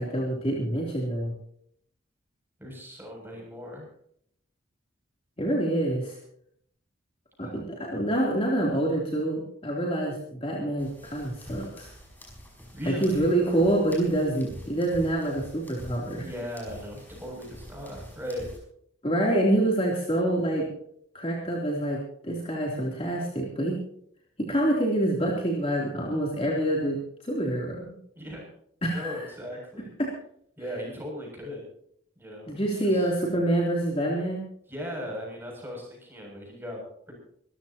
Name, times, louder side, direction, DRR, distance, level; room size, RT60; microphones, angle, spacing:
voice 1, 0.0-1.3 5.4-6.2 7.4-11.9 12.9-16.3 19.0-20.7 21.1-23.8 24.4-27.0 27.2-27.8 28.8-29.3 30.0-30.1 32.5-34.4, right 1 dB, 30° left, -2 dB, 3.3 m, -26 dB
voice 2, 2.6-3.9 7.4-7.6 12.7-13.3 16.2-18.5 28.2-28.5 28.9-29.9 30.6-31.6 32.2-33.1 34.7-36.8 37.1-37.2, equal, 10° right, -1 dB, 7.3 m, -38 dB
sound 1, 10.8-18.6, equal, 10° left, 5.4 m, -46 dB
25.5 x 14.5 x 3.0 m, 0.68 s
head